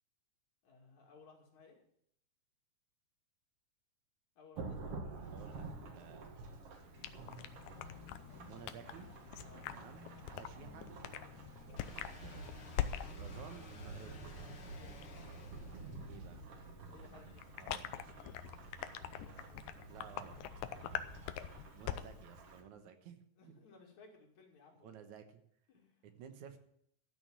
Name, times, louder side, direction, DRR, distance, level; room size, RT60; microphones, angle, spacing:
voice 1, 0.6-1.7 4.4-5.8 9.4-9.7 14.7-15.1 16.9-17.6 19.2-20.0 23.4-25.1 25.7-26.1, left 4 dB, 70° left, 0 dB, 3.9 m, -62 dB
Thunderstorm / Rain, 4.6-22.6, right 3 dB, 55° right, 2.5 m, -50 dB
voice 2, 5.2-5.6 5.9-6.3 8.4-9.1 9.7-10.9 11.8-12.7 13.1-14.3 16.1-16.4 17.6-18.1 19.9-20.3 21.7-23.6 24.8-25.4 26.0-26.6, right 8 dB, 80° right, 9 dB, 2.5 m, -54 dB
sound 1, 7.0-22.2, left 11 dB, 85° left, 2.2 m, -45 dB
sound 2, 11.8-16.3, left 4 dB, 40° left, 2.0 m, -57 dB
13.5 x 6.3 x 8.8 m, 0.69 s
omnidirectional pair, 3.4 m